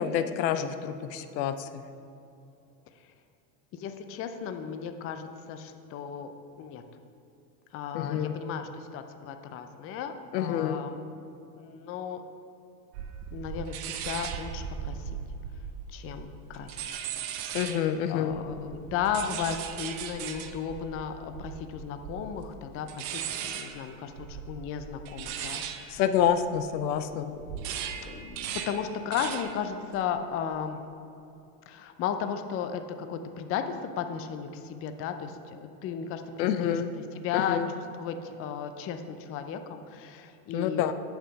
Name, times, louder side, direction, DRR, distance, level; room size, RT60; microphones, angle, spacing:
voice 1, 0.0-1.8 7.9-8.4 10.3-10.8 17.5-18.3 25.9-27.2 36.4-36.9 37.3-37.7 40.5-40.9, left 9 dB, 80° left, 10 dB, 0.7 m, -28 dB
voice 2, 3.7-6.3 6.6-6.8 7.7-11.0 11.6-12.2 13.3-15.1 15.9-16.8 18.1-26.0 27.6-27.7 27.9-30.8 31.7-35.4 35.8-36.8 37.1-37.6 38.0-40.8, left 7 dB, 30° left, 8 dB, 0.5 m, -35 dB
sound 1, 12.9-18.0 18.3-27.0 27.3-29.6 29.9-30.3, right 8 dB, 60° right, 0.8 m, -38 dB
7.2 x 5.6 x 5.2 m, 2.8 s
hypercardioid pair, 105°, 50 cm